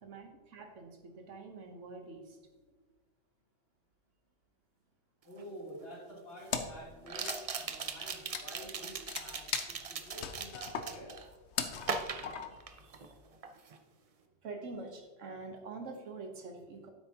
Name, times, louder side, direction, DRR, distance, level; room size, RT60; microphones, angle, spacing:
voice 1, 0.0-2.4 2.8-2.9 6.9-7.1 7.7-7.8 12.7-13.1 14.4-16.9, right 3 dB, 80° right, 3 dB, 1.4 m, -46 dB
voice 2, 5.2-11.2, equal, 50° left, -6 dB, 3.3 m, -49 dB
sound 1, 5.4-5.5 7.1-11.3 11.8-13.1 13.4-13.8, right 5 dB, 45° right, 0.5 m, -39 dB
Wood, 6.5-6.9 7.1-12.7, left 7 dB, 65° left, 1.0 m, -39 dB
9.5 x 7.9 x 2.9 m, 1.3 s
omnidirectional pair, 1.3 m